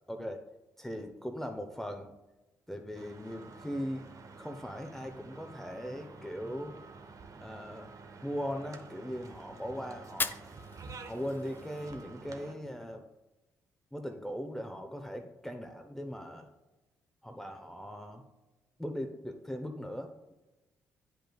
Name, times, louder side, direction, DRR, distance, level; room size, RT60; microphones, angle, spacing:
voice 1, 0.1-0.4 0.8-2.1 2.7-4.1 4.4-6.8 7.4-7.9 8.2-10.4 11.0-13.1 13.9-16.5 17.2-18.2 18.8-20.1, equal, 5° left, 4 dB, 0.8 m, -39 dB
sound 1, 2.9-12.5, right 4 dB, 45° right, 0.8 m, -50 dB
Fire, 10.0-12.1, left 4 dB, 25° left, 0.4 m, -39 dB
10.0 x 5.0 x 2.3 m, 1.0 s
hypercardioid pair, 45°, 8 cm